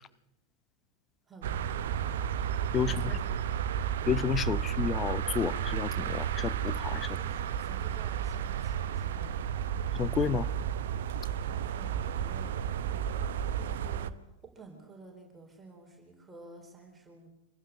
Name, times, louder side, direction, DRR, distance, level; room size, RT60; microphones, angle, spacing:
voice 1, 1.3-2.2 2.8-3.9 7.0-9.4 11.3-13.1 13.5-17.3, right 3 dB, 10° right, 4.3 m, -52 dB
sound 1, 1.4-14.1, right 9 dB, 60° right, 0.9 m, -32 dB
voice 2, 2.7-3.2 4.1-7.1 9.9-10.5, left 8 dB, 25° left, 0.8 m, -31 dB
26.0 x 15.5 x 7.1 m
figure-of-eight pair, 90°, 0 cm